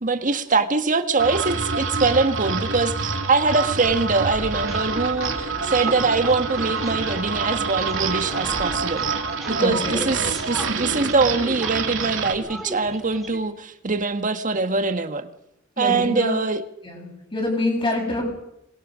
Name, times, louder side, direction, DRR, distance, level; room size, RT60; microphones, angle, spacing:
voice 1, 0.0-9.0 9.5-10.2 10.5-15.3 15.8-16.6, right 3 dB, 40° right, 1.6 m, -23 dB
sound 1, 1.2-12.3, right 4 dB, 75° right, 2.8 m, -27 dB
sound 2, 3.5-13.4, equal, ahead, 4.2 m, -37 dB
voice 2, 9.6-10.0 15.8-16.3 16.8-18.3, left 2 dB, 25° left, 7.8 m, -26 dB
26.5 x 21.5 x 6.3 m
head